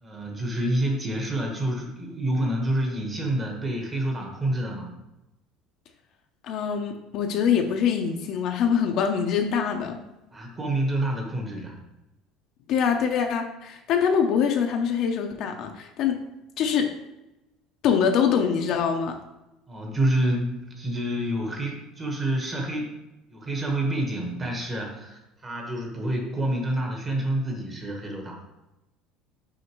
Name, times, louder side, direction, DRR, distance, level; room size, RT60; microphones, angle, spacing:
voice 1, 0.0-4.9 10.3-11.8 19.7-23.0 23.3-28.4, right 1 dB, 20° right, 1 dB, 1.1 m, -28 dB
voice 2, 6.4-10.0 12.7-16.2 16.6-16.9 17.8-19.2, left 7 dB, 45° left, 4 dB, 0.6 m, -24 dB
6.3 x 5.0 x 3.0 m, 0.95 s
cardioid pair, 160°, 0 cm